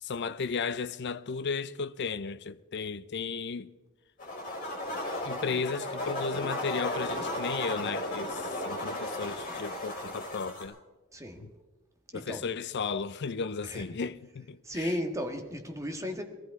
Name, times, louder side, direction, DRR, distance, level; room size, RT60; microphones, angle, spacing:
voice 1, 0.0-3.7 5.2-10.8 11.4-11.5 12.1-14.9, left 5 dB, 55° left, 0.5 m, -34 dB
sound 1, 4.2-10.6, left 1 dB, 40° left, 4.9 m, -35 dB
voice 2, 11.1-11.4 12.1-12.5 13.6-13.8 14.6-16.2, equal, 15° right, 1.5 m, -34 dB
20.0 x 14.5 x 4.7 m
head